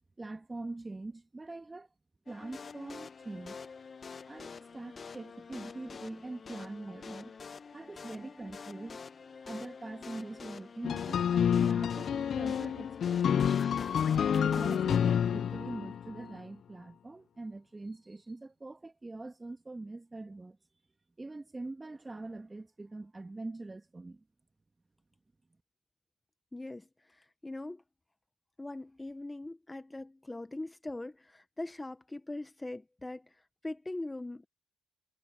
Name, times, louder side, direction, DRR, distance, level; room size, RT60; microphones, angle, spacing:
voice 1, 0.2-1.9 2.3-3.6 4.3-7.3 7.7-9.0 9.4-13.5 14.0-20.6 21.2-24.2, right 2 dB, 20° right, 1.9 m, -43 dB
sound 1, 2.3-15.0, left 5 dB, 40° left, 0.9 m, -46 dB
sound 2, 10.8-16.3, left 8 dB, 60° left, 0.4 m, -29 dB
voice 2, 26.5-27.8 28.6-34.5, left 2 dB, 15° left, 0.9 m, -41 dB
cardioid pair, 90°, 0 cm